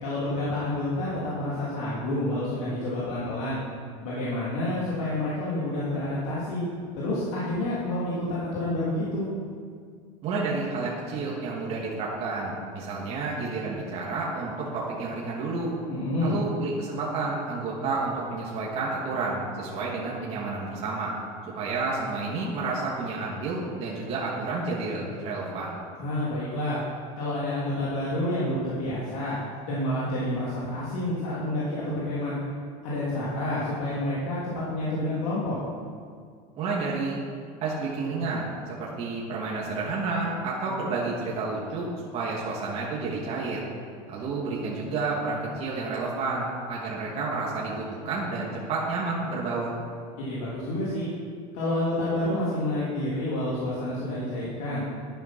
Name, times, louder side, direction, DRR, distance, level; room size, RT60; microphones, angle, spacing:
voice 1, 0.0-3.6 4.0-6.6 6.9-9.3 15.9-16.4 26.0-26.8 27.2-32.4 32.8-34.4 34.7-35.6 50.2-51.1 51.5-54.9, left 1 dB, 70° left, -8 dB, 3.3 m, -29 dB
voice 2, 10.2-15.7 16.2-21.2 21.5-25.8 36.5-37.2 37.6-41.9 42.1-43.7 44.1-49.8, right 3 dB, 35° right, -5 dB, 2.4 m, -30 dB
11.5 x 9.1 x 6.2 m, 2.2 s
supercardioid pair, 160°, 17 cm